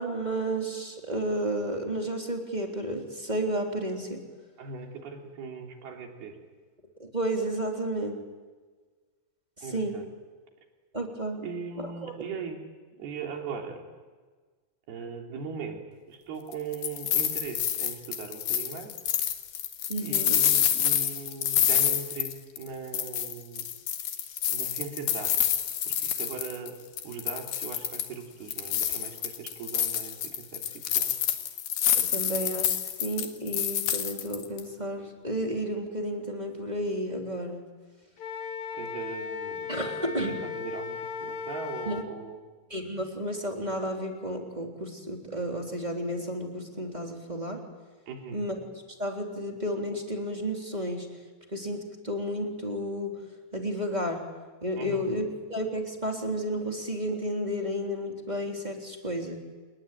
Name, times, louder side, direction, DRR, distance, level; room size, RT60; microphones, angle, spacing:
voice 1, 0.0-4.2 7.0-8.2 9.6-10.0 10.9-11.4 12.0-12.1 19.9-20.4 31.9-37.7 39.7-40.4 41.8-42.0 42.7-47.6 48.3-48.5 49.0-51.1 51.5-53.2 53.5-54.2 54.6-59.4, equal, 10° right, 1 dB, 3.0 m, -32 dB
voice 2, 4.6-6.4 9.6-10.0 11.4-12.6 13.0-13.9 14.9-18.9 20.0-23.7 24.5-25.6 25.9-26.8 27.0-31.1 38.7-42.4 48.1-48.4 54.8-55.1, right 5 dB, 85° right, 2 dB, 5.2 m, -39 dB
sound 1, 16.5-22.7 22.9-26.7 27.0-28.2 28.5-34.6, left 10 dB, 85° left, 3.7 m, -28 dB
Wind instrument woodwind instrument, 38.2-42.1, left 6 dB, 60° left, 2.0 m, -36 dB
28.5 x 22.0 x 9.2 m, 1.4 s
omnidirectional pair, 4.4 m